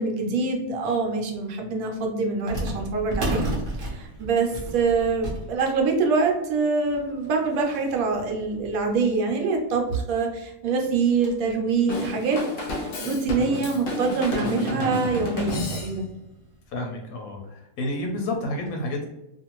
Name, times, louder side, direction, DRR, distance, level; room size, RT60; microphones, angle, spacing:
voice 1, 0.0-3.5 3.8-12.4 12.7-16.1, right 4 dB, 80° right, 2 dB, 1.1 m, -25 dB
sound 1, 1.0-1.1 2.5-9.4 10.0-10.1 10.3-10.4 10.8-11.5 12.1-12.2 13.0-13.1 13.5-13.6 15.0-15.2 15.6-15.7 16.3-16.5, right 1 dB, 50° right, 0.7 m, -34 dB
Drum kit / Drum, 11.9-16.2, left 1 dB, 65° left, 0.5 m, -31 dB
voice 2, 16.7-19.1, left 1 dB, 85° left, 2 dB, 1.1 m, -30 dB
2.5 x 2.5 x 2.9 m, 0.89 s
omnidirectional pair, 1.5 m